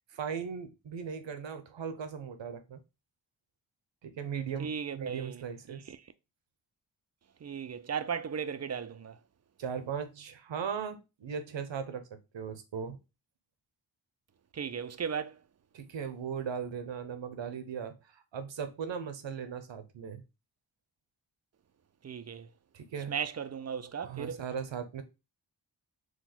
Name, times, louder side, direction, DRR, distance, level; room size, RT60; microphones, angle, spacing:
voice 1, 0.1-2.8 4.0-5.9 9.6-12.1 12.3-13.0 15.7-20.2 22.7-23.2 24.0-25.0, right 7 dB, 75° right, 0.8 m, -38 dB
voice 2, 4.6-5.4 5.9-6.0 7.4-9.2 14.5-15.3 22.0-22.5 23.1-24.4, right 7 dB, 35° right, 0.5 m, -36 dB
4.1 x 2.3 x 4.2 m
cardioid pair, 50°, 44 cm